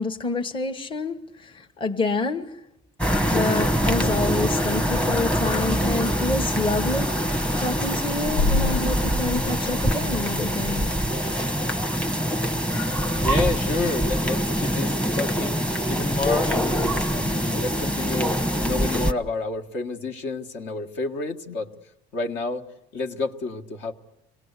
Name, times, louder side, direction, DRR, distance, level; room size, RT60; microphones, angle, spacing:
voice 1, 0.0-2.6 3.3-7.1 7.6-10.9, left 3 dB, 25° left, 4 dB, 1.2 m, -28 dB
sound 1, 3.0-19.1, equal, 5° left, 1.0 m, -24 dB
sound 2, 7.3-7.5 8.1-10.0 10.6-10.7 11.5-11.6 12.6-12.7 12.9-13.1 13.5-13.7 14.3-14.4 14.7-14.9 15.8-16.8, left 3 dB, 80° left, 0.8 m, -29 dB
voice 2, 13.2-21.7 22.1-22.6 22.9-23.9, left 3 dB, 65° left, 4 dB, 1.6 m, -30 dB
26.0 x 18.5 x 8.2 m, 0.87 s
cardioid pair, 110°, 20 cm